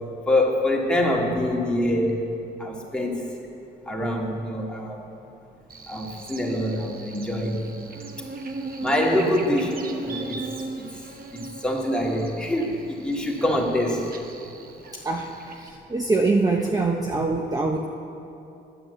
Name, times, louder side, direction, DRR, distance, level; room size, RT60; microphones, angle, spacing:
voice 1, 0.3-3.2 3.9-5.0 5.9-7.7 8.8-10.4 10.8-11.0 11.3-14.1, left 1 dB, 5° left, -2 dB, 1.9 m, -25 dB
Buzz, 5.7-15.7, right 3 dB, 45° right, 1.1 m, -38 dB
voice 2, 15.0-17.9, right 3 dB, 20° right, 1 dB, 0.7 m, -24 dB
9.8 x 8.0 x 7.9 m, 2.8 s
cardioid pair, 90°, 20 cm